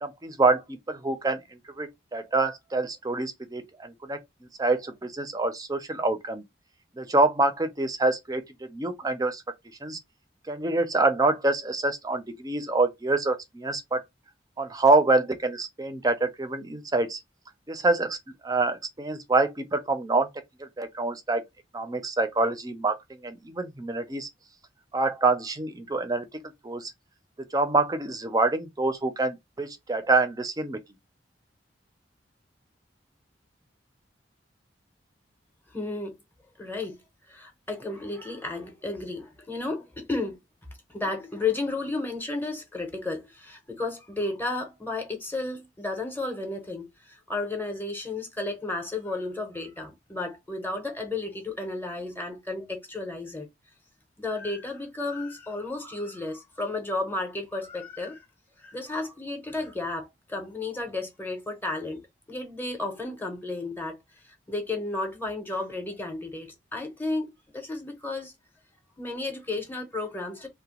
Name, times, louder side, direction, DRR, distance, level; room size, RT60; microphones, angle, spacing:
voice 1, 0.0-4.2 4.6-6.4 7.0-8.4 8.7-9.4 9.8-10.0 10.5-14.0 14.6-17.2 17.7-18.2 18.4-20.3 20.6-21.4 21.7-24.3 24.9-26.3 26.6-26.9 27.5-30.8, right 2 dB, 20° right, 0.5 m, -26 dB
voice 2, 35.7-36.2 36.6-37.0 37.3-40.4 40.9-53.5 54.2-58.3 58.6-62.0 62.3-68.3 69.0-70.5, left 2 dB, 10° left, 0.7 m, -33 dB
2.8 x 2.1 x 2.9 m
head